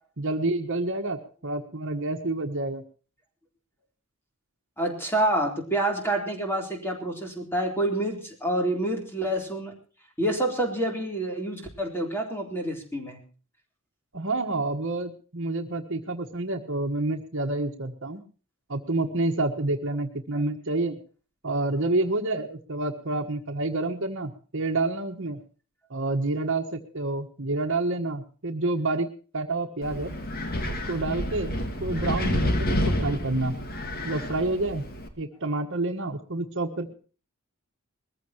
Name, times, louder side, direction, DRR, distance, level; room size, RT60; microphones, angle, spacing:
voice 1, 0.2-2.8 14.1-18.2 18.7-21.0 21.4-25.4 25.9-29.1 29.3-30.1 30.9-31.5 31.8-33.5 34.0-34.8 35.2-36.9, right 2 dB, 60° right, 5 dB, 1.5 m, -28 dB
voice 2, 4.8-9.7 10.2-13.2 20.3-20.4, right 1 dB, 10° left, 2 dB, 3.7 m, -28 dB
Wind, 29.8-35.1, left 1 dB, 45° left, 1.9 m, -29 dB
21.0 x 14.5 x 3.0 m, 0.37 s
head